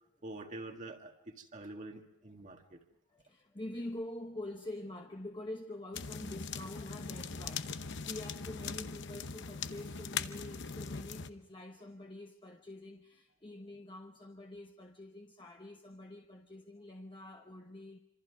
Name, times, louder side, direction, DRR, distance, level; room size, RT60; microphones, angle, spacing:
voice 1, 0.2-2.8, right 2 dB, 35° right, 1.9 m, -46 dB
voice 2, 3.1-18.0, left 1 dB, 20° left, 1.0 m, -46 dB
sound 1, 5.9-11.3, left 6 dB, 55° left, 0.9 m, -41 dB
26.5 x 26.0 x 4.7 m
head